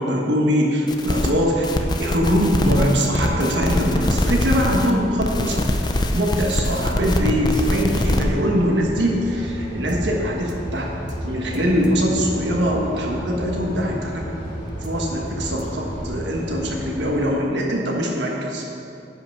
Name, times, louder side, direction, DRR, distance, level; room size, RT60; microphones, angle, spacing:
voice 1, 0.0-1.7 2.0-5.6 6.1-14.2 14.8-18.7, equal, 85° right, -1 dB, 1.5 m, -22 dB
sound 1, 0.9-1.3 1.6-4.9 5.2-8.2, left 1 dB, 25° left, 0.6 m, -23 dB
sound 2, 7.9-17.2, equal, 55° left, 2.5 m, -32 dB
sound 3, 9.9-10.1 10.5-10.7 11.1-11.3 11.5-11.9 14.7-14.9 15.3-15.6, right 1 dB, 25° right, 0.6 m, -35 dB
9.9 x 5.9 x 6.0 m, 2.7 s
head